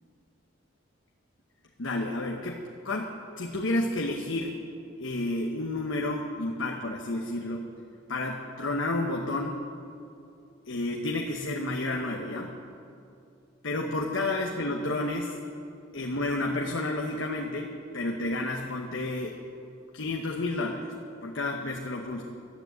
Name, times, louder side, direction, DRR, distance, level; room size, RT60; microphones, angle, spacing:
voice 1, 1.8-4.6 5.0-7.6 8.1-9.6 10.7-12.6 13.6-15.4 15.9-19.3 19.9-20.9 21.2-22.2, left 2 dB, 70° left, 0 dB, 1.0 m, -31 dB
12.0 x 9.7 x 7.9 m, 2.6 s
head